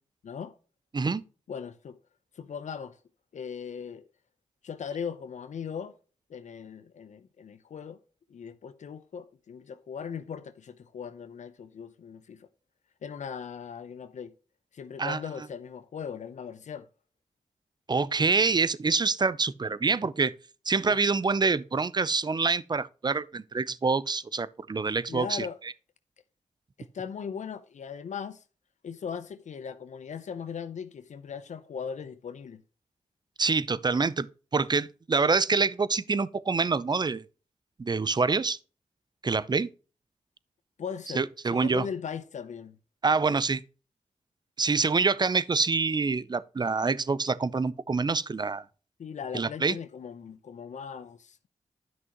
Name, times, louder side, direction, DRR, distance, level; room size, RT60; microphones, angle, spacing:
voice 1, 0.2-0.5 1.5-2.0 2.3-3.0 3.3-4.0 4.6-6.0 6.3-8.0 8.3-12.5 13.0-14.3 14.7-16.9 20.9-21.0 25.1-25.6 26.8-28.4 28.8-32.6 40.8-41.2 41.5-42.8 49.0-51.5, left 7 dB, 75° left, 0.8 m, -39 dB
voice 2, 17.9-20.3 20.7-25.5 33.4-34.3 34.5-37.2 37.8-38.6 39.2-39.7 41.1-41.9 43.0-43.6 44.6-48.6 49.3-49.8, right 4 dB, 35° right, 0.6 m, -26 dB
11.0 x 6.0 x 3.0 m
cardioid pair, 55°, 12 cm